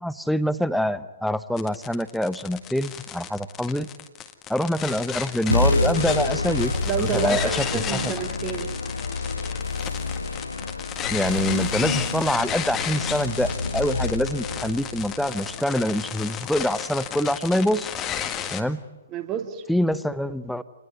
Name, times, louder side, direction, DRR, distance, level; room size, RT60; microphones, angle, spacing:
voice 1, 0.0-3.9 4.5-8.1 11.1-17.9 18.5-18.8 19.7-20.6, equal, ahead, 14 dB, 0.9 m, -25 dB
sound 1, 1.6-18.6, left 9 dB, 20° left, 1.8 m, -33 dB
sound 2, 5.5-16.3, left 2 dB, 75° left, 1.7 m, -28 dB
voice 2, 6.8-8.7 19.1-19.6, right 8 dB, 25° right, 7 dB, 2.6 m, -29 dB
28.5 x 20.5 x 9.2 m, 1.1 s
figure-of-eight pair, 120°, 0 cm